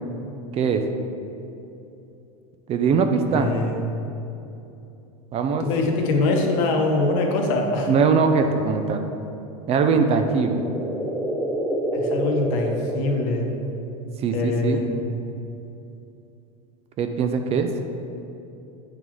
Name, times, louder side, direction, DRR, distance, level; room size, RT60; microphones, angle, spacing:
voice 1, 0.5-0.8 2.7-3.5 5.3-5.6 7.9-9.1 9.7-10.6 14.2-14.8 17.0-17.7, right 5 dB, 35° right, 6 dB, 0.5 m, -21 dB
voice 2, 3.3-3.8 5.6-7.9 11.9-13.4 14.3-14.9, left 2 dB, 65° left, 2 dB, 1.0 m, -23 dB
sound 1, 10.1-14.0, right 1 dB, 5° left, 0.6 m, -28 dB
8.3 x 3.8 x 3.1 m, 2.8 s
supercardioid pair, 110°, 18 cm